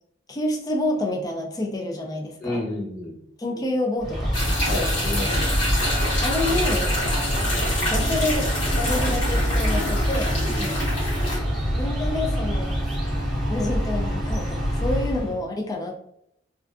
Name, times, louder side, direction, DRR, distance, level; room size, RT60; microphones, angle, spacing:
voice 1, 0.3-2.6 3.4-4.3 6.2-6.9 7.9-8.5 8.7-10.4 11.7-12.8 13.5-15.9, left 1 dB, 20° left, 1 dB, 0.3 m, -28 dB
voice 2, 2.4-3.1 4.6-5.6 10.5-10.7, left 1 dB, 45° left, -6 dB, 1.2 m, -30 dB
sound 1, 4.0-15.4, equal, ahead, 0.9 m, -26 dB
sound 2, 4.3-11.4, left 1 dB, 85° left, 1.1 m, -26 dB
2.4 x 2.4 x 2.3 m, 0.76 s
head